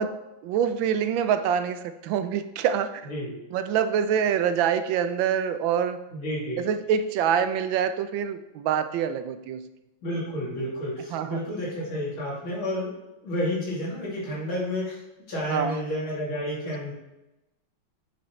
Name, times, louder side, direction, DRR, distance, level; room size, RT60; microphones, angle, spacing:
voice 1, 0.0-2.9 3.5-6.0 6.6-9.7 11.1-11.4 15.5-15.8, right 8 dB, 80° right, 11 dB, 1.3 m, -25 dB
voice 2, 3.0-3.4 6.1-6.6 10.0-12.9 13.2-15.0 15.3-16.9, left 1 dB, 85° left, -5 dB, 3.3 m, -30 dB
7.4 x 6.8 x 3.1 m, 0.94 s
omnidirectional pair, 2.2 m